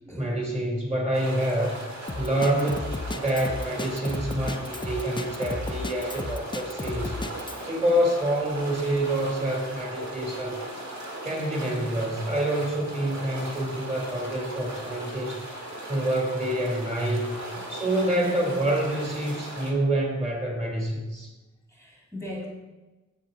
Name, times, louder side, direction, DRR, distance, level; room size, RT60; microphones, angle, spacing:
voice 1, 0.2-1.8 2.2-7.2 7.7-10.6 11.2-15.5 15.9-17.4 17.7-21.3, right 1 dB, 25° right, -1 dB, 3.0 m, -27 dB
sound 1, 1.1-19.7, right 1 dB, 75° right, 1.9 m, -38 dB
Drum kit, 2.1-7.6, left 2 dB, 15° left, 0.5 m, -33 dB
voice 2, 21.7-22.5, left 1 dB, 5° right, -3 dB, 2.0 m, -39 dB
8.9 x 7.9 x 3.8 m, 1.1 s
wide cardioid pair, 105°, 29 cm